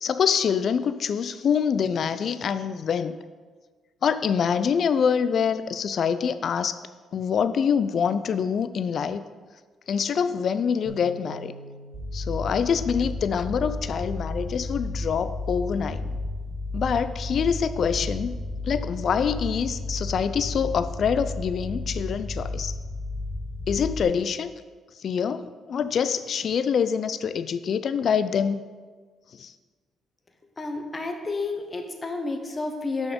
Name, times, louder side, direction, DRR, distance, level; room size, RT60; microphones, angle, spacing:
voice 1, 0.0-3.2 4.0-6.8 7.1-9.2 9.9-11.5 12.1-16.1 16.7-18.4 18.6-22.7 23.7-24.6 25.0-28.6 29.4-29.5, left 7 dB, 55° left, 12 dB, 0.3 m, -25 dB
Bass guitar, 10.9-17.1, right 1 dB, 60° right, 1.3 m, -49 dB
sound 1, 11.9-24.0, left 2 dB, 20° right, 1.3 m, -32 dB
voice 2, 30.6-33.1, left 3 dB, 25° left, 4 dB, 1.0 m, -31 dB
6.0 x 6.0 x 5.1 m, 1.4 s
cardioid pair, 90°, 0 cm